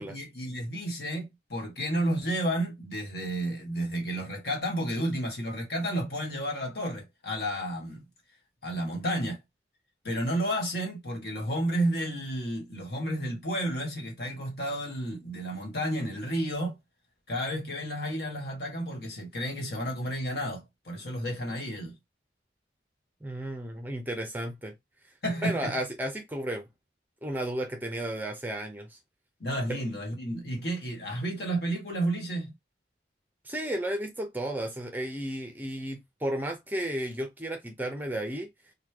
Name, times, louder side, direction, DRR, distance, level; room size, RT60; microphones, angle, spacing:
voice 1, 0.0-8.0 8.6-9.4 10.0-16.8 17.3-21.9 25.2-25.7 29.4-32.5, right 1 dB, 65° left, 1.4 m, -31 dB
voice 2, 23.2-24.7 25.4-26.6 27.2-29.0 33.4-38.5, right 1 dB, 10° right, 0.5 m, -33 dB
3.2 x 2.2 x 3.3 m
head